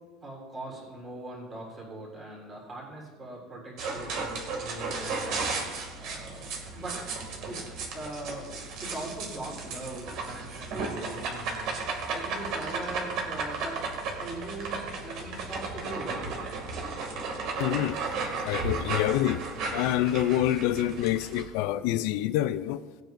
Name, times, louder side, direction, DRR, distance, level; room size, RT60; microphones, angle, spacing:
voice 1, 0.2-7.0 7.4-7.6 7.9-8.5 8.8-13.8 14.2-16.6 20.0-20.1, right 1 dB, 20° right, -2 dB, 3.6 m, -41 dB
sound 1, 3.8-21.4, right 4 dB, 55° right, 2.3 m, -34 dB
voice 2, 17.6-18.0 18.5-19.4 19.7-22.8, left 13 dB, 70° left, 12 dB, 0.4 m, -26 dB
19.5 x 9.1 x 2.6 m, 1.4 s
cardioid pair, 160°, 0 cm